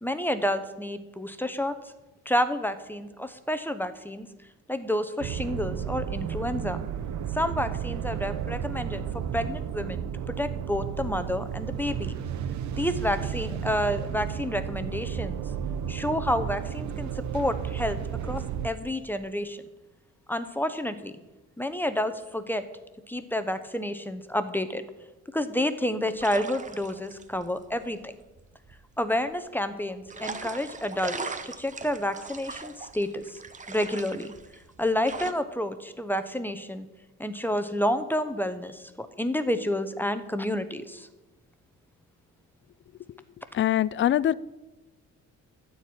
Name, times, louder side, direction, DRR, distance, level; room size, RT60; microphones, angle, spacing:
voice 1, 0.0-1.7 2.2-4.3 4.7-6.8 7.3-12.1 12.8-15.4 15.9-18.0 18.3-19.6 20.3-21.1 21.6-22.6 23.1-24.8 25.3-28.1 29.0-33.4 33.7-34.3 34.8-36.9 37.2-41.1, left 1 dB, 5° left, 10 dB, 0.9 m, -29 dB
sound 1, 5.2-18.7, right 8 dB, 70° right, 0.8 m, -33 dB
sound 2, 26.1-29.3 30.0-35.3, right 4 dB, 25° right, 0.9 m, -40 dB
voice 2, 43.5-44.3, left 12 dB, 40° left, 20 dB, 0.4 m, -23 dB
13.5 x 4.7 x 8.7 m, 1.1 s
cardioid pair, 90°, 30 cm